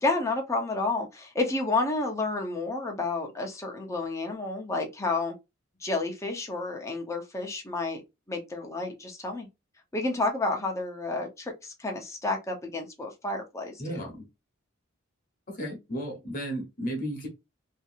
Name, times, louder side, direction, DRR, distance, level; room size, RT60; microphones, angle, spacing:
voice 1, 0.0-5.3 5.8-8.0 8.3-9.5 9.9-14.1, left 2 dB, 15° left, 0.7 m, -30 dB
voice 2, 13.8-14.3 15.5-17.3, equal, 45° left, 1.0 m, -34 dB
2.7 x 2.5 x 2.5 m
head